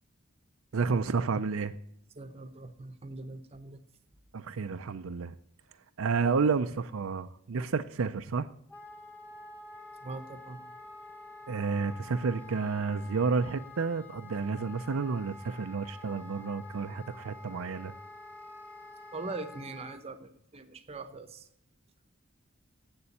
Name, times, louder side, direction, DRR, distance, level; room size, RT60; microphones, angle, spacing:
voice 1, 0.7-1.7 4.3-5.3 6.0-8.5 11.5-17.9, right 4 dB, 75° right, 0.5 m, -30 dB
voice 2, 2.2-3.8 10.0-10.6 19.1-21.5, right 3 dB, 30° right, 0.8 m, -42 dB
Wind instrument woodwind instrument, 8.7-20.0, left 2 dB, 10° left, 1.3 m, -48 dB
7.7 x 7.0 x 8.3 m
head